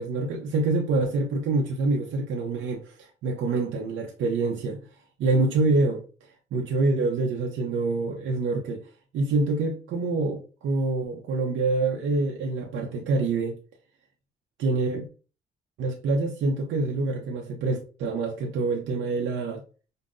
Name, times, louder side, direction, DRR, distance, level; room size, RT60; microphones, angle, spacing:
voice 1, 0.0-4.8 5.2-6.0 6.5-13.6 14.6-15.1 15.8-19.6, right 3 dB, 80° right, 0.6 m, -26 dB
5.2 x 2.1 x 2.6 m
cardioid pair, 90°, 20 cm